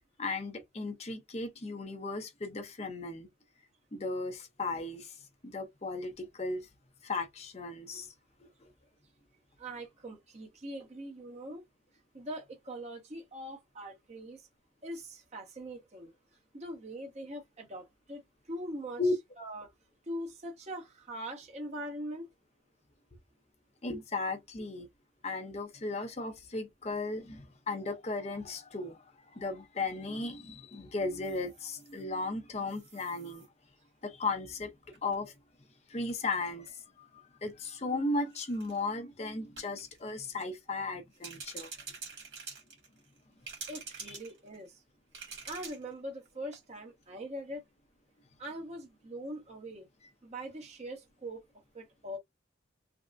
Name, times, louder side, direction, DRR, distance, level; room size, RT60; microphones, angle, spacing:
voice 1, 0.2-3.3 3.9-5.1 5.4-6.7 7.0-8.1 8.4-8.5 19.0-19.1 23.8-24.9 25.2-29.0 29.3-33.4 34.0-34.7 35.0-35.3 35.9-37.1 37.4-41.7 44.1-44.2, left 3 dB, 35° left, 0.6 m, -36 dB
voice 2, 9.6-11.6 12.1-14.4 14.8-16.1 16.5-18.2 18.5-19.0 19.4-19.7 20.1-22.3 43.7-44.8 45.2-47.6 48.4-49.9 50.2-51.4 51.7-52.2, right 1 dB, 35° right, 0.9 m, -42 dB
sound 1, 31.2-32.0 32.7-33.5 34.9-35.1 36.1-36.2 36.5-36.7 37.4-37.6 38.3-38.8 39.6-40.0 41.1-43.2 43.4-44.7 45.1-45.9 46.2-46.3 46.5-46.6, right 4 dB, 70° right, 2.1 m, -47 dB
3.4 x 2.0 x 2.5 m
head